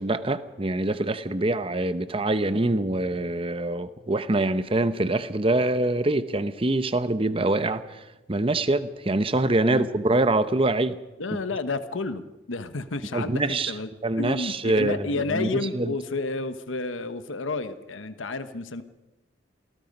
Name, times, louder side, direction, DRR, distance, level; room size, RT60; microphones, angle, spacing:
voice 1, 0.0-7.8 8.3-11.0 13.1-13.7 14.0-15.9, right 2 dB, 30° right, 12 dB, 0.8 m, -24 dB
voice 2, 11.2-13.9 14.2-18.8, left 3 dB, 90° left, 11 dB, 1.1 m, -31 dB
28.0 x 19.0 x 5.4 m, 1.1 s
head